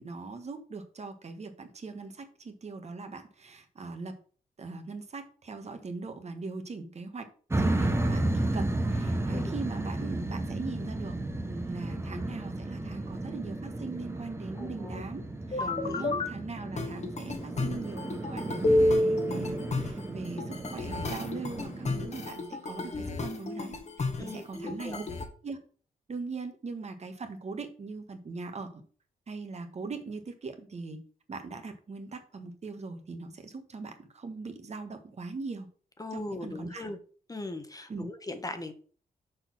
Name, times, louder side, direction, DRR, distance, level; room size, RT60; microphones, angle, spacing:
voice 1, 0.0-4.2 4.6-7.3 7.6-11.2 11.5-15.2 15.5-25.0 25.4-25.6 26.1-28.8 29.3-31.0 31.3-35.7 36.1-36.9 37.9-38.1, right 4 dB, 45° right, 6 dB, 1.4 m, -40 dB
sound 1, 7.5-22.3, right 1 dB, 15° right, 1.0 m, -33 dB
voice 2, 14.5-15.0 15.6-16.1 24.2-25.0 36.0-37.0 37.3-38.7, left 2 dB, 25° left, 7 dB, 1.3 m, -39 dB
sound 2, 15.5-16.3 16.8-25.2, left 1 dB, 50° left, 1.5 m, -30 dB
6.7 x 4.1 x 6.1 m, 0.41 s
cardioid pair, 70°, 15 cm